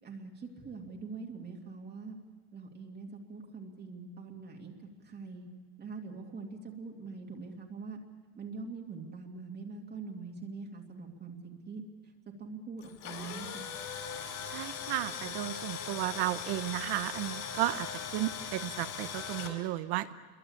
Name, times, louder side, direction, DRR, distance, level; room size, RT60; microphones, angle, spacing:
voice 1, 0.0-2.2 2.5-4.7 5.0-5.5 5.8-8.0 8.4-12.1 12.4-13.7, right 4 dB, 20° right, 1 dB, 2.3 m, -43 dB
Tools, 12.8-19.5, left 7 dB, 40° left, 4.5 m, -40 dB
voice 2, 14.5-20.1, right 15 dB, 55° right, 11 dB, 1.0 m, -34 dB
29.0 x 23.0 x 8.6 m, 1.3 s
cardioid pair, 170°, 45 cm